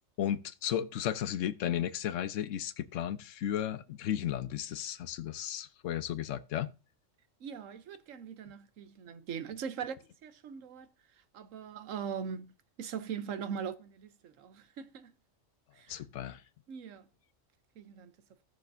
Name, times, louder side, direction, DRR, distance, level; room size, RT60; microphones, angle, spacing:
voice 1, 0.2-6.7 15.9-16.4, left 10 dB, 80° left, 1.0 m, -34 dB
voice 2, 7.4-10.0 10.2-10.9 11.3-12.5 12.8-15.1 15.8-16.0 16.7-17.1 17.8-18.1, right 7 dB, 80° right, 1.2 m, -41 dB
17.0 x 6.4 x 2.7 m
omnidirectional pair, 1.3 m